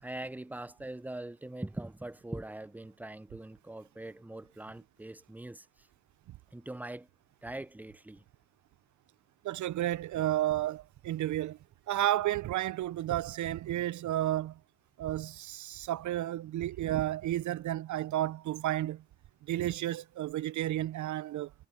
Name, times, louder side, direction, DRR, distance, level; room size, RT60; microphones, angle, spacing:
voice 1, 0.0-5.9 6.5-7.1 7.4-8.2, right 1 dB, 5° right, 0.4 m, -42 dB
voice 2, 9.4-11.6 11.9-14.6 15.0-19.0 19.5-21.5, right 13 dB, 75° right, 0.4 m, -32 dB
cardioid pair, 85°, 30 cm